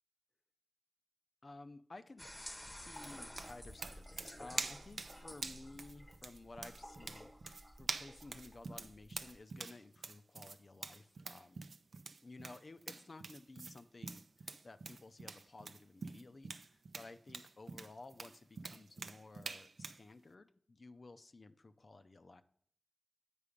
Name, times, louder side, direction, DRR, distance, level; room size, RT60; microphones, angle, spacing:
voice 1, 1.4-11.6 12.2-22.4, left 3 dB, 55° left, 10 dB, 0.5 m, -55 dB
sound 1, 2.2-9.4, equal, 15° left, 0.8 m, -52 dB
sound 2, 2.9-20.0, right 4 dB, 85° right, 0.5 m, -46 dB
8.5 x 4.8 x 5.1 m, 0.63 s
wide cardioid pair, 60°, 0 cm